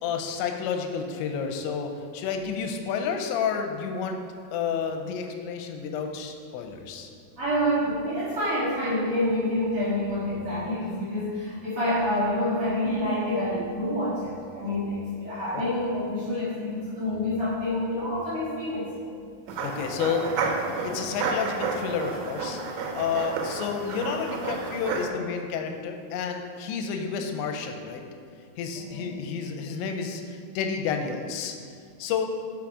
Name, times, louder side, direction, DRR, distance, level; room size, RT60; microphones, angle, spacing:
voice 1, 0.0-4.2 4.5-7.1 19.6-20.3 20.8-22.6 22.9-28.0 28.6-31.5 32.0-32.3, left 6 dB, 85° left, 5 dB, 2.9 m, -30 dB
voice 2, 7.4-19.1 28.7-29.2, left 1 dB, 50° right, -12 dB, 1.8 m, -27 dB
sound 1, 19.5-25.1, right 4 dB, 80° right, 2.9 m, -31 dB
6.1 x 6.0 x 4.8 m, 2.2 s
omnidirectional pair, 5.1 m